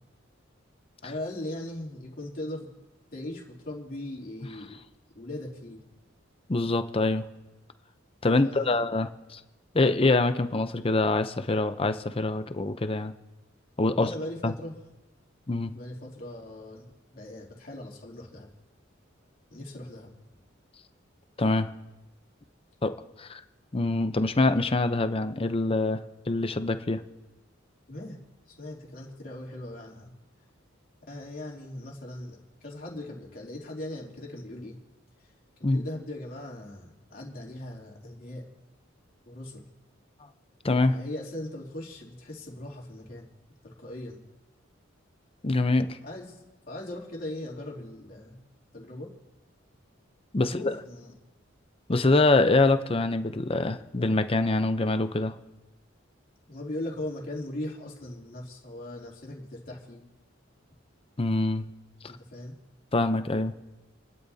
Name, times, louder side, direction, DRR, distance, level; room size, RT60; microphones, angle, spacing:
voice 1, 1.0-2.7 3.1-4.8 5.1-5.8 8.4-8.8 13.9-14.7 15.7-18.5 19.5-20.1 27.9-28.2 28.6-30.1 31.1-34.8 35.6-38.5 39.3-39.7 40.9-43.3 43.6-44.2 46.0-48.4 48.7-49.1 50.4-51.1 56.5-60.0 62.3-62.5, left 1 dB, 45° left, -2 dB, 3.1 m, -39 dB
voice 2, 6.5-7.3 8.2-9.4 9.7-13.1 13.8-14.1 14.4-14.5 15.5-15.7 21.4-21.7 22.8-23.4 23.7-26.0 26.3-27.0 35.6-35.9 40.6-41.0 45.4-46.0 50.3-50.7 51.9-55.3 61.2-61.6 62.9-63.5, left 2 dB, 30° left, 10 dB, 0.7 m, -25 dB
30.0 x 12.0 x 2.8 m, 1.1 s
head